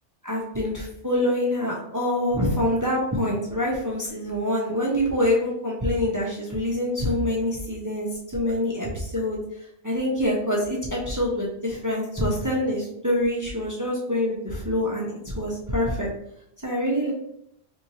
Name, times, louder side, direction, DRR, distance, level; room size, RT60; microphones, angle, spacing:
voice 1, 0.2-9.4 9.8-16.1 16.6-17.1, left 1 dB, 20° right, -4 dB, 0.6 m, -25 dB
4.4 x 2.7 x 2.7 m, 0.73 s
omnidirectional pair, 1.3 m